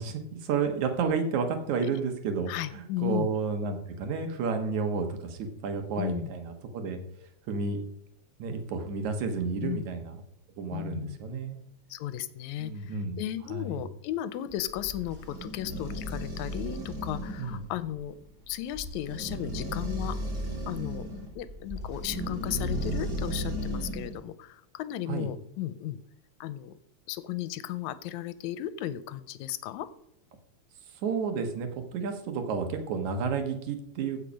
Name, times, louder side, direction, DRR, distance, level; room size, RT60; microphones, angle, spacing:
voice 1, 0.0-7.0 7.5-7.8 8.4-10.2 10.6-11.6 12.6-13.2 13.5-13.8 17.4-17.6 25.1-25.3 31.0-34.2, right 5 dB, 80° right, 6 dB, 2.7 m, -31 dB
voice 2, 2.5-3.3 6.0-6.3 9.6-9.9 10.7-11.2 11.9-18.2 18.5-20.2 20.7-21.1 21.4-26.0 26.4-26.7 27.1-29.9, left 12 dB, 85° left, 14 dB, 2.0 m, -35 dB
sound 1, 14.5-24.2, equal, 20° right, 2.3 m, -35 dB
15.5 x 5.8 x 5.2 m, 0.74 s
omnidirectional pair, 3.3 m